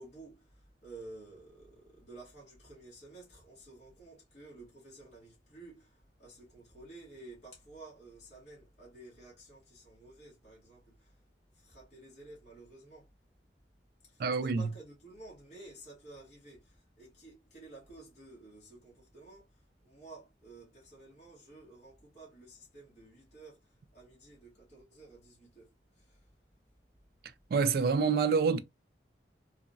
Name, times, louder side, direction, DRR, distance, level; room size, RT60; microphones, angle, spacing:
voice 1, 0.0-11.1 11.5-13.1 14.1-19.4 19.8-23.6 23.9-25.7 26.0-26.2, right 2 dB, 40° left, 1.1 m, -52 dB
voice 2, 14.2-14.7 27.5-28.6, right 5 dB, 55° right, 0.3 m, -27 dB
3.2 x 2.0 x 2.4 m
head